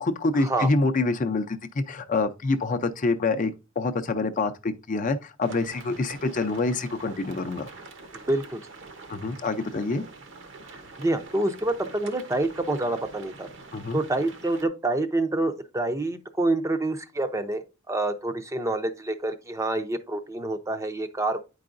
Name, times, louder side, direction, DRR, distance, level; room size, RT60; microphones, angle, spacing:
voice 1, 0.0-3.5 3.8-7.7 9.1-10.0 13.7-14.0, left 3 dB, 40° left, 0.5 m, -26 dB
sound 1, 5.4-14.7, right 3 dB, 70° right, 1.0 m, -45 dB
voice 2, 8.3-8.6 11.0-13.5 13.9-21.4, right 2 dB, 15° right, 0.5 m, -27 dB
9.3 x 4.7 x 2.5 m
head